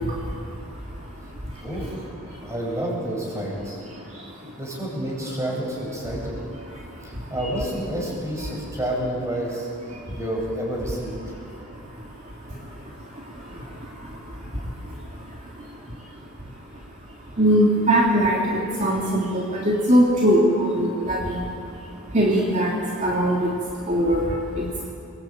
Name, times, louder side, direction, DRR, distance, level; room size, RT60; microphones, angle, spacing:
voice 1, 0.0-1.6 2.3-2.5 3.9-4.6 6.7-7.3 9.9-10.2 11.2-24.9, equal, 35° right, -4 dB, 3.2 m, -24 dB
voice 2, 1.6-2.0 2.4-3.8 4.4-6.4 7.0-11.1, right 1 dB, 15° right, -3 dB, 8.0 m, -29 dB
29.0 x 22.0 x 9.1 m, 2.6 s
head